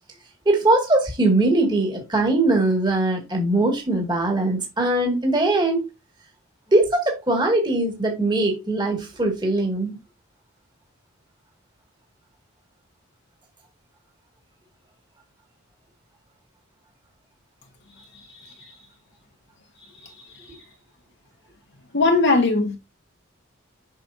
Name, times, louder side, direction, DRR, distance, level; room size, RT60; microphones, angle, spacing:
voice 1, 0.5-5.8 6.7-10.0, right 2 dB, 20° right, 2.0 m, -21 dB
voice 2, 18.1-18.7 20.0-20.6 21.9-22.8, left 3 dB, 55° left, 1.3 m, -22 dB
7.6 x 6.1 x 2.6 m
head